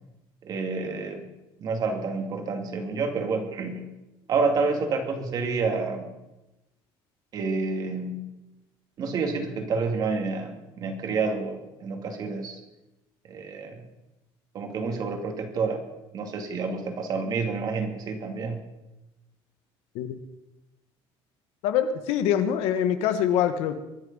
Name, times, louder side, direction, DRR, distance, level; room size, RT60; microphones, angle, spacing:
voice 1, 0.4-1.3 1.6-3.9 4.3-6.1 7.3-8.3 9.0-12.6 13.3-13.9 14.5-15.8 16.1-18.6, right 4 dB, 40° right, 5 dB, 2.5 m, -29 dB
voice 2, 21.6-23.7, left 9 dB, 90° left, 9 dB, 1.5 m, -24 dB
23.5 x 9.9 x 5.6 m, 0.98 s
cardioid pair, 160°, 10 cm